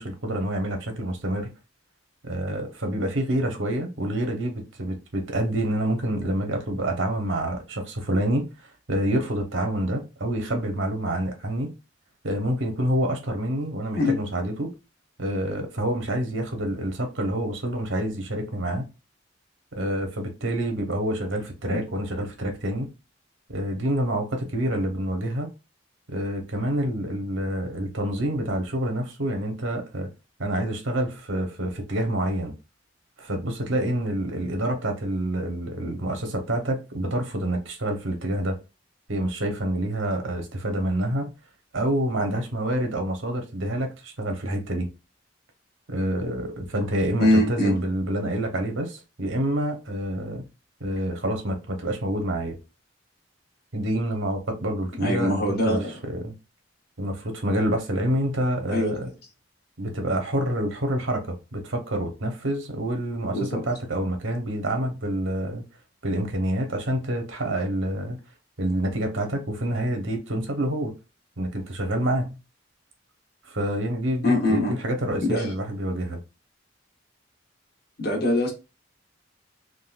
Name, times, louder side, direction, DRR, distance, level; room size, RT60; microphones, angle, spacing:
voice 1, 0.0-1.5 2.2-8.5 8.9-11.7 12.2-14.7 15.2-18.9 19.7-22.9 23.5-25.5 26.1-30.1 30.4-32.5 33.2-38.6 39.1-41.3 41.7-44.9 45.9-50.4 50.8-52.6 53.7-55.8 56.1-56.3 57.0-59.1 59.8-65.6 66.0-68.2 68.6-70.9 71.4-72.4 73.5-76.2, right 1 dB, 80° right, 0.9 m, -27 dB
voice 2, 47.2-47.8 55.0-55.9 58.7-58.9 63.3-63.6 74.2-74.7 75.2-75.5 78.0-78.5, left 1 dB, 55° left, 1.1 m, -23 dB
3.7 x 2.3 x 2.4 m
head